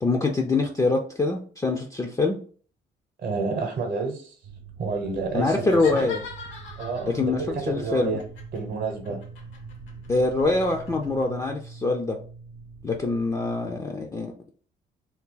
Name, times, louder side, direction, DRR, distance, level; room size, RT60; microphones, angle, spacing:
voice 1, 0.0-2.4 5.3-6.2 7.1-8.2 10.1-12.2 12.8-14.3, left 3 dB, 15° left, 2 dB, 0.4 m, -24 dB
voice 2, 3.2-4.3 4.8-6.1 6.8-8.2 8.5-9.2, right 4 dB, 50° right, 2 dB, 0.9 m, -29 dB
sound 1, 4.4-13.8, right 4 dB, 85° right, 0.8 m, -43 dB
sound 2, 5.6-7.3 8.2-11.3, left 4 dB, 75° left, 1.0 m, -40 dB
2.8 x 2.2 x 3.7 m, 0.43 s
cardioid pair, 90°, 20 cm